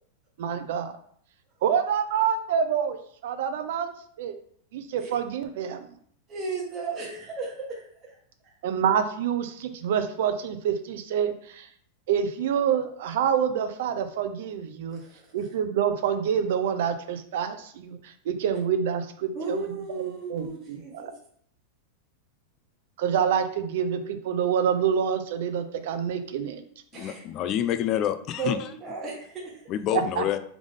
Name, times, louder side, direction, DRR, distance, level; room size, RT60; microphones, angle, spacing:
voice 1, 0.4-0.9 1.6-3.0 3.2-3.9 4.2-4.4 4.7-5.9 8.6-11.7 12.1-15.0 15.3-20.0 20.3-21.1 23.0-26.6 29.9-30.2, right 8 dB, 70° right, 0.6 m, -27 dB
voice 2, 6.3-8.2 14.9-15.3 19.3-21.1 26.9-27.2 28.4-29.6, right 4 dB, 25° right, 1.1 m, -35 dB
voice 3, 26.9-28.7 29.7-30.4, left 11 dB, 40° left, 0.4 m, -27 dB
3.7 x 3.5 x 3.5 m
supercardioid pair, 135°, 0 cm